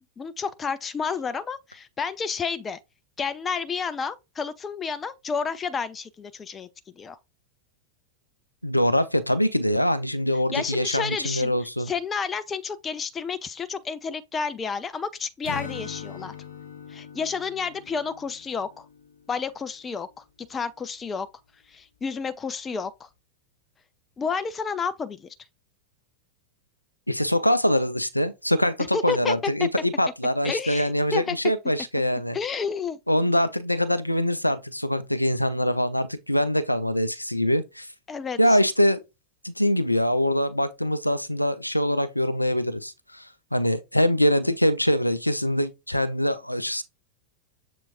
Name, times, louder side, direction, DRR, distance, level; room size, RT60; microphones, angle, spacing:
voice 1, 0.2-2.8 3.2-6.7 7.0-7.2 10.5-16.3 16.9-18.9 19.3-21.3 21.7-23.1 24.2-25.3 28.9-29.7 30.4-31.4 32.3-33.0 38.1-38.6, left 5 dB, 20° left, 0.4 m, -30 dB
voice 2, 8.6-11.9 27.1-32.4 33.1-37.9 38.4-39.0 39.4-46.8, equal, 85° left, 0.4 m, -24 dB
Acoustic guitar / Strum, 15.4-19.3, left 7 dB, 65° left, 1.3 m, -41 dB
6.9 x 3.0 x 2.5 m
figure-of-eight pair, 90°, 0 cm